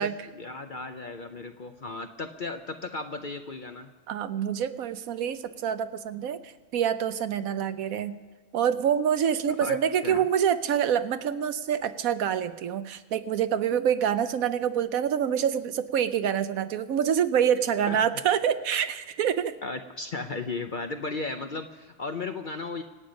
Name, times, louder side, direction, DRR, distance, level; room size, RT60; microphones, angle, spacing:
voice 1, 0.0-3.9 9.5-9.8 10.0-10.2 17.9-18.0 19.6-22.8, left 3 dB, 45° left, 6 dB, 0.7 m, -35 dB
voice 2, 4.1-8.2 8.5-19.5, right 8 dB, 75° right, 12 dB, 1.1 m, -26 dB
26.0 x 8.7 x 5.2 m, 1.4 s
omnidirectional pair, 1.5 m